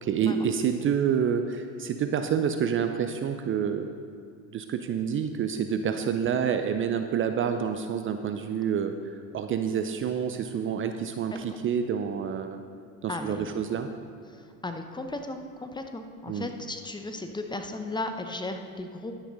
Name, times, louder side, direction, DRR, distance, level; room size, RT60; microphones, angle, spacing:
voice 1, 0.0-3.9 4.5-12.6 13.0-13.9 16.3-16.5, right 7 dB, 30° right, 7 dB, 0.6 m, -28 dB
voice 2, 13.1-13.5 14.3-19.1, left 2 dB, 10° left, 6 dB, 0.8 m, -36 dB
11.0 x 9.9 x 4.0 m, 2.4 s
hypercardioid pair, 90°, 40 cm